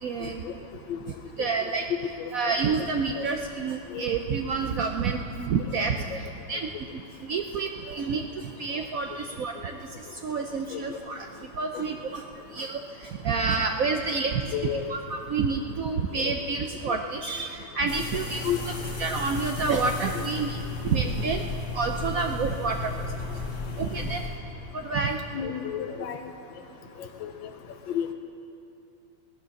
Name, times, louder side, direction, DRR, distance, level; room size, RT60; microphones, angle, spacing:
voice 1, 0.0-0.4 1.4-6.7 7.2-11.3 11.5-12.2 12.5-21.4 21.7-23.0 23.8-24.2 24.7-25.2, right 5 dB, 70° right, 4 dB, 0.8 m, -29 dB
voice 2, 14.5-14.9 16.1-16.3 18.4-18.6 25.3-26.2 27.2-27.3 27.9-28.1, left 9 dB, 80° left, 5 dB, 1.5 m, -30 dB
sound 1, 17.9-24.3, left 3 dB, 40° left, 1.7 m, -34 dB
16.5 x 11.0 x 6.4 m, 2.6 s
omnidirectional pair, 2.1 m